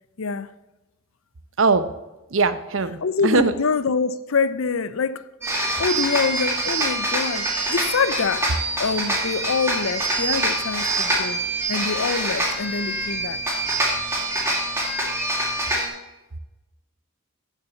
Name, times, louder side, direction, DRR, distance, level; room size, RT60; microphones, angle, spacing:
voice 1, 0.2-0.5 3.0-5.3 5.8-8.5 8.8-11.4 11.7-13.4, left 5 dB, 75° left, 0.6 m, -25 dB
voice 2, 2.3-3.0 3.2-3.5, right 3 dB, 70° right, 0.8 m, -20 dB
sound 1, 5.4-15.9, right 1 dB, 10° right, 2.7 m, -25 dB
8.7 x 7.4 x 7.0 m
head